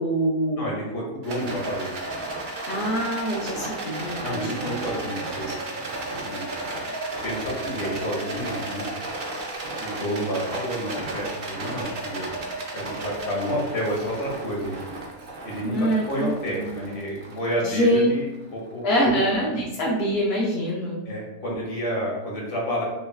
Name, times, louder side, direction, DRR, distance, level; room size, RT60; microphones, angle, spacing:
voice 1, 0.0-0.7 2.7-4.8 15.6-17.0 17.6-18.1 18.8-21.0, equal, 60° left, -4 dB, 0.6 m, -25 dB
voice 2, 0.5-2.0 4.2-6.5 7.2-8.9 9.8-14.8 15.4-19.2 21.0-22.8, equal, 35° left, -4 dB, 1.2 m, -30 dB
Rattle, 1.2-18.6, right 2 dB, 85° right, 0.4 m, -34 dB
5.8 x 2.5 x 2.3 m, 1.0 s
omnidirectional pair, 1.8 m